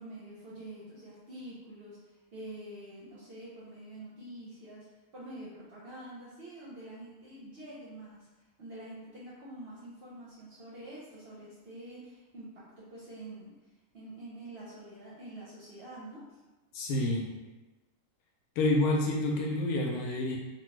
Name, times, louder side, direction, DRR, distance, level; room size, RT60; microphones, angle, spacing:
voice 1, 0.0-4.9 5.1-8.3 8.6-13.5 13.9-16.4, right 1 dB, 60° right, -7 dB, 0.6 m, -46 dB
voice 2, 16.7-17.3 18.6-20.4, left 2 dB, 85° left, -1 dB, 1.1 m, -28 dB
2.9 x 2.2 x 3.1 m, 1.1 s
omnidirectional pair, 1.6 m